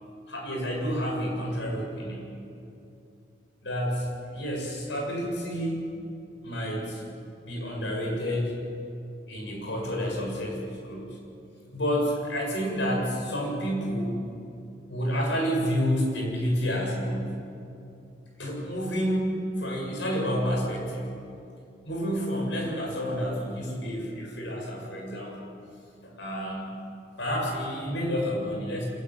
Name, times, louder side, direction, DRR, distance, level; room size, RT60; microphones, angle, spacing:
voice 1, 0.3-2.2 3.6-5.8 6.4-7.0 7.4-8.6 9.3-11.2 11.7-14.2 14.9-17.3 18.4-21.1 21.8-25.5 26.0-26.7 27.2-28.9, equal, 85° left, -1 dB, 7.8 m, -29 dB
25.5 x 15.5 x 9.9 m, 2.6 s
head